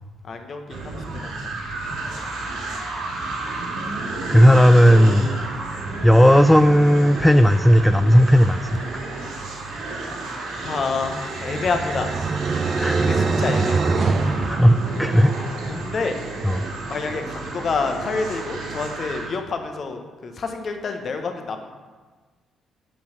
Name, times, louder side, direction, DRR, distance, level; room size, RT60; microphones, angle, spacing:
voice 1, 0.2-1.5 10.5-12.1 13.0-13.9 15.7-16.2 16.9-21.7, left 4 dB, 55° left, 5 dB, 1.3 m, -28 dB
sound 1, 0.7-19.3, right 2 dB, 80° right, 2.5 m, -31 dB
voice 2, 4.3-5.3 6.0-8.6 12.8-13.0 14.4-15.3 16.4-16.6, equal, 5° left, 9 dB, 0.4 m, -14 dB
sound 2, 10.9-15.4, right 4 dB, 45° right, 0.8 m, -24 dB
9.3 x 5.9 x 6.0 m, 1.4 s
hypercardioid pair, 45°, 0 cm